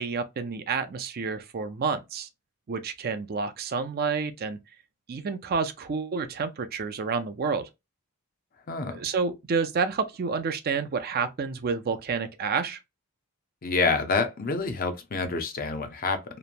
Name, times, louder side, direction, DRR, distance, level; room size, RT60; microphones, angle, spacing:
voice 1, 0.0-2.3 2.7-4.6 5.1-7.7 8.9-12.8, right 5 dB, 45° right, 0.4 m, -29 dB
voice 2, 8.7-9.0 13.6-16.2, left 4 dB, 40° left, 0.6 m, -27 dB
3.0 x 2.1 x 2.5 m
head